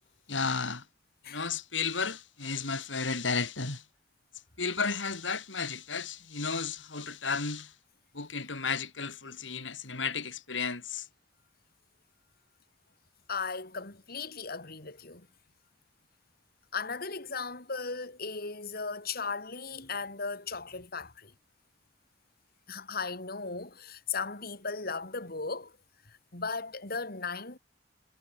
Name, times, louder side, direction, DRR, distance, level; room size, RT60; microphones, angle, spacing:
voice 1, 0.3-0.8 1.3-3.8 4.6-7.7 8.1-11.0, left 5 dB, 85° left, 3.7 m, -33 dB
voice 2, 13.3-15.3 16.7-21.3 22.7-25.7 26.1-27.6, left 4 dB, 55° left, 4.3 m, -37 dB
head